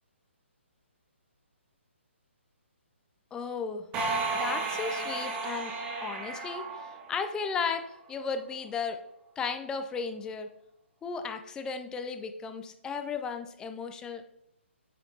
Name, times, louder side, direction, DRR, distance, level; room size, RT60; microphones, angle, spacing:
voice 1, 3.3-3.9 4.3-5.7 6.0-9.0 9.4-10.5 11.0-14.2, left 5 dB, 10° left, 7 dB, 0.5 m, -35 dB
sound 1, 3.9-7.6, right 3 dB, 20° right, 1.3 m, -33 dB
8.3 x 5.1 x 2.8 m, 0.76 s
figure-of-eight pair, 140°, 7 cm